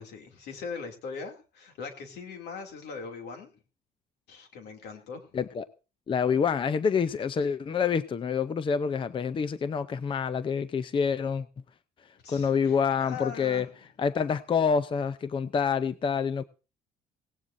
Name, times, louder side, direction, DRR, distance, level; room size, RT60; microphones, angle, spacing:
voice 1, 0.0-3.5 4.3-5.3 12.2-13.7, left 5 dB, 80° left, 4 dB, 2.7 m, -40 dB
voice 2, 5.3-5.7 6.1-11.4 12.3-13.7 14.0-16.4, left 6 dB, 30° left, 14 dB, 0.6 m, -27 dB
17.5 x 17.0 x 2.6 m, 0.34 s
cardioid pair, 110°, 17 cm